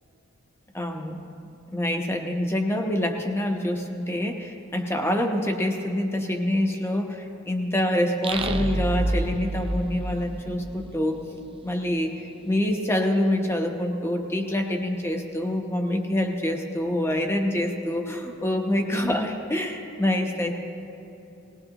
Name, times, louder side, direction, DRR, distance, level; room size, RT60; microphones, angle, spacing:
voice 1, 0.7-1.2 1.7-11.2 11.6-12.1 12.5-20.5, left 1 dB, 10° left, 3 dB, 0.9 m, -26 dB
sound 1, 8.2-10.9, right 2 dB, 25° right, 0.6 m, -28 dB
19.0 x 18.0 x 2.9 m, 2.9 s
head